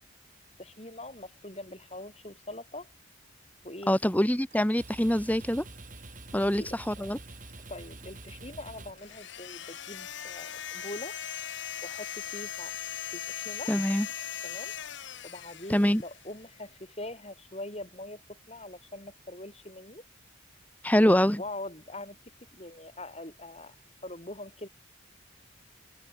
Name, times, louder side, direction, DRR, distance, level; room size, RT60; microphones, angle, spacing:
voice 1, 0.6-2.9 3.6-3.9 6.3-7.1 7.7-11.1 11.8-12.8 13.1-13.7 14.4-14.7 15.2-20.0 21.0-22.2 22.5-23.7 24.0-24.7, left 1 dB, 30° left, 6.4 m, -43 dB
voice 2, 3.9-5.6 6.3-7.2 13.7-14.1 15.7-16.0 20.8-21.4, equal, 5° left, 1.3 m, -24 dB
sound 1, 4.5-9.7, right 2 dB, 40° right, 2.7 m, -47 dB
sound 2, 9.0-16.4, left 9 dB, 60° left, 1.4 m, -39 dB
open air
head